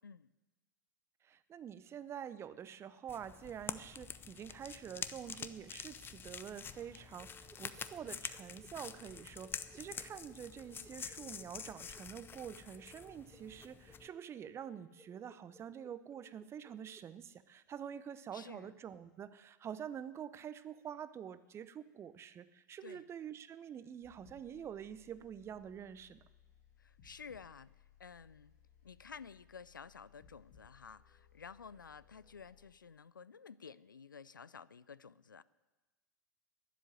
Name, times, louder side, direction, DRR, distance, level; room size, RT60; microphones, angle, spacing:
voice 1, 1.2-26.2, right 8 dB, 25° right, 15 dB, 0.7 m, -47 dB
sound 1, 3.1-14.1, left 7 dB, 20° left, 0.6 m, -47 dB
sound 2, 7.2-17.0, right 2 dB, 5° right, 1.2 m, -62 dB
voice 2, 18.3-18.7 22.8-23.1 26.8-27.7 28.0-28.5 28.8-35.4, left 6 dB, 80° left, 20 dB, 0.4 m, -52 dB
sound 3, 24.0-32.7, left 7 dB, 55° left, 2.3 m, -65 dB
12.0 x 10.5 x 9.8 m, 1.2 s
figure-of-eight pair, 90°, 11 cm